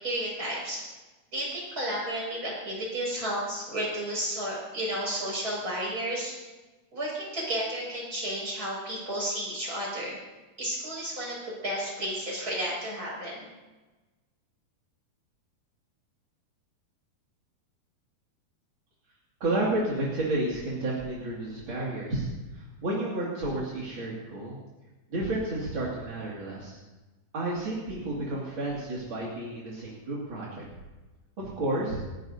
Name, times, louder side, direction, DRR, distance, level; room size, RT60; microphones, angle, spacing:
voice 1, 0.0-0.8 1.3-6.3 6.9-10.2 10.6-13.5, right 1 dB, 20° right, -4 dB, 6.0 m, -32 dB
voice 2, 19.4-22.3 22.5-24.6 25.1-26.8 27.3-30.6 31.4-32.0, right 2 dB, 40° right, -5 dB, 2.4 m, -31 dB
28.5 x 10.5 x 2.7 m, 1.2 s
omnidirectional pair, 4.5 m